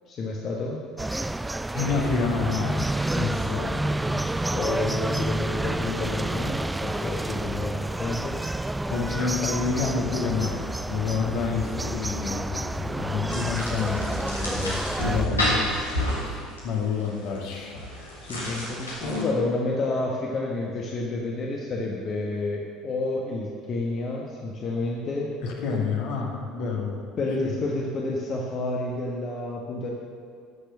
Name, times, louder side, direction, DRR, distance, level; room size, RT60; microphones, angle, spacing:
voice 1, 0.1-0.8 3.3-3.4 4.5-8.4 11.3-11.5 15.3-15.6 18.2-25.3 27.2-29.9, left 2 dB, 40° left, -2 dB, 1.3 m, -30 dB
sound 1, 1.0-15.3, right 1 dB, 10° right, 0.3 m, -29 dB
voice 2, 1.7-2.9 3.1-4.9 8.8-15.5 16.2-17.7 25.4-27.0 27.4-27.5, left 5 dB, 60° left, -1 dB, 1.9 m, -29 dB
sound 2, 13.3-19.2, left 1 dB, 85° left, 2.3 m, -30 dB
12.5 x 6.8 x 6.4 m, 2.3 s
figure-of-eight pair, 60°, 0 cm